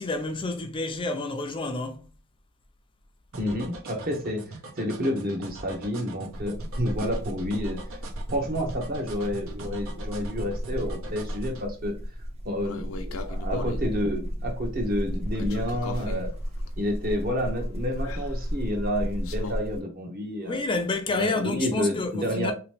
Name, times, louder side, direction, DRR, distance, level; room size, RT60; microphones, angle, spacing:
voice 1, 0.0-2.1 20.5-22.5, left 3 dB, 25° left, 0.4 m, -29 dB
voice 2, 3.3-7.8 8.3-12.0 12.4-16.3 16.8-20.6 21.1-22.5, equal, 45° right, 0.9 m, -30 dB
sound 1, 3.3-11.7, right 3 dB, 80° right, 0.8 m, -42 dB
sound 2, 6.3-19.8, equal, 30° right, 0.6 m, -33 dB
sound 3, 12.6-13.9 15.3-19.5, left 3 dB, 75° left, 0.5 m, -40 dB
3.2 x 2.9 x 3.2 m
head